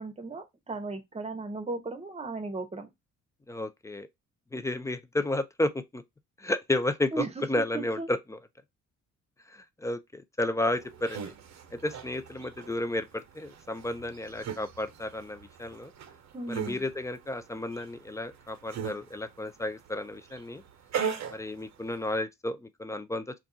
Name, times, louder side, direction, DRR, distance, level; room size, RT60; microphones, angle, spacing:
voice 1, 0.0-2.9 7.1-7.4 7.7-8.1 16.3-16.8, right 3 dB, 20° right, 0.8 m, -36 dB
voice 2, 3.5-4.1 4.5-6.0 6.4-8.4 9.5-11.2 11.7-15.9 16.5-20.6 21.3-23.4, left 1 dB, 10° left, 0.4 m, -32 dB
sound 1, 10.7-22.2, right 7 dB, 65° right, 0.7 m, -40 dB
2.4 x 2.3 x 3.8 m
cardioid pair, 90°, 30 cm